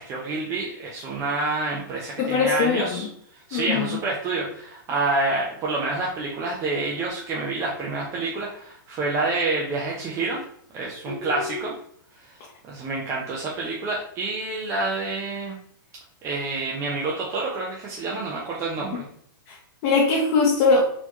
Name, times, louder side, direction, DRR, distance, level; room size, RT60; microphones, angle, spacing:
voice 1, 0.0-3.1 3.5-10.4 10.7-11.7 12.2-12.4 12.6-15.5 16.2-19.1, right 3 dB, 25° right, -3 dB, 0.7 m, -28 dB
voice 2, 2.2-3.1 3.5-4.0 11.1-11.5 19.5-19.6 19.8-20.9, left 4 dB, 45° left, -4 dB, 0.9 m, -22 dB
4.2 x 2.9 x 2.9 m, 0.65 s
hypercardioid pair, 135°, 12 cm